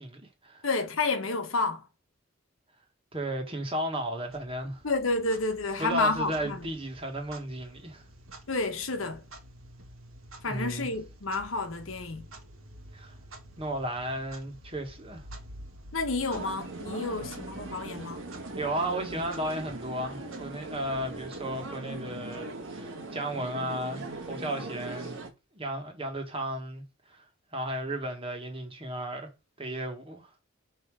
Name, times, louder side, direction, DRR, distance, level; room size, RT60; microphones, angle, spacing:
voice 1, 0.0-0.7 3.1-4.8 5.8-8.0 10.5-10.9 12.9-13.1 13.6-15.3 18.6-25.2 25.5-27.2 27.5-29.3 29.6-30.3, right 1 dB, 25° right, 1.6 m, -34 dB
voice 2, 0.6-1.8 4.8-6.7 8.5-9.2 10.4-12.2 15.9-18.2, left 3 dB, 75° left, 1.2 m, -30 dB
Clock, 4.3-23.0, right 1 dB, 80° right, 1.4 m, -50 dB
sound 1, 16.3-25.3, right 2 dB, 65° right, 1.6 m, -40 dB
5.9 x 3.7 x 4.9 m
head